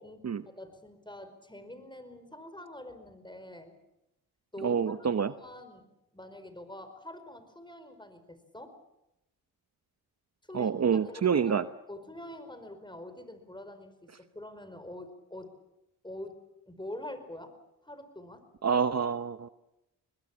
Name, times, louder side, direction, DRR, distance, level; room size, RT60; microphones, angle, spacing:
voice 1, 0.0-3.8 4.5-5.9 6.1-8.8 10.5-10.7 11.0-11.6 11.9-14.1 14.3-15.6 16.0-16.4 16.7-17.5 17.8-18.4, left 1 dB, 10° left, 10 dB, 5.0 m, -45 dB
voice 2, 4.6-5.3 10.5-11.6 18.6-19.5, right 6 dB, 40° right, 11 dB, 0.9 m, -27 dB
24.0 x 20.5 x 7.4 m, 0.89 s
cardioid pair, 55°, 39 cm